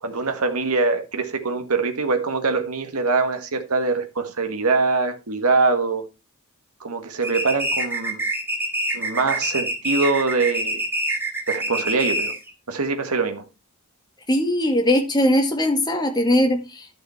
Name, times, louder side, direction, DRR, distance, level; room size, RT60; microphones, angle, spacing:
voice 1, 0.0-6.1 6.8-8.2 8.9-10.8 11.5-12.4 12.7-13.4, right 3 dB, 85° right, 1.6 m, -23 dB
sound 1, 7.2-12.5, right 1 dB, 10° right, 1.9 m, -26 dB
voice 2, 14.3-16.9, left 1 dB, 20° left, 1.9 m, -20 dB
12.0 x 6.5 x 4.4 m
head